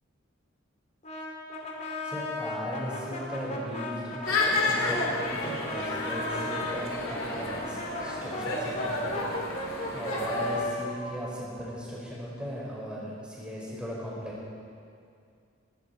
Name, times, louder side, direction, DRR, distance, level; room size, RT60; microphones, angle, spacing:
Brass instrument, 1.0-6.8 7.4-12.2, left 1 dB, 35° left, 2.4 m, -36 dB
voice 1, 2.0-9.3 9.9-14.4, equal, 5° right, -6 dB, 4.9 m, -37 dB
sound 1, 4.2-10.6, left 2 dB, 90° left, 2.7 m, -31 dB
18.5 x 16.5 x 4.4 m, 2.3 s
head